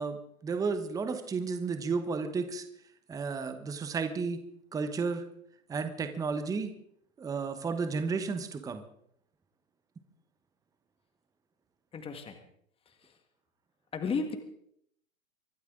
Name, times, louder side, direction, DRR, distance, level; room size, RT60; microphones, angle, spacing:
voice 1, 0.0-2.7 3.1-4.4 4.7-5.2 5.7-6.7 7.2-8.8, right 4 dB, 10° right, 9 dB, 1.0 m, -32 dB
voice 2, 11.9-12.4 12.8-13.2 13.9-14.4, left 5 dB, 15° left, 6 dB, 1.7 m, -34 dB
24.5 x 12.0 x 3.8 m, 0.69 s
hypercardioid pair, 125°, 41 cm